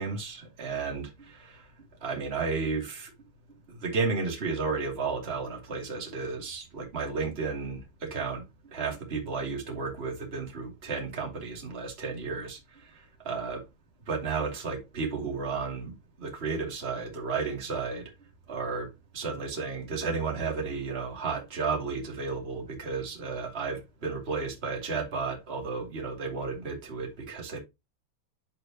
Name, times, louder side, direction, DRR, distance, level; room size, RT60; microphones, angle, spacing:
voice 1, 0.0-1.7 2.0-3.1 3.7-13.6 14.0-15.9 16.2-18.1 18.5-27.6, right 4 dB, 20° right, 1.6 m, -33 dB
10.5 x 4.9 x 2.9 m
omnidirectional pair, 5.3 m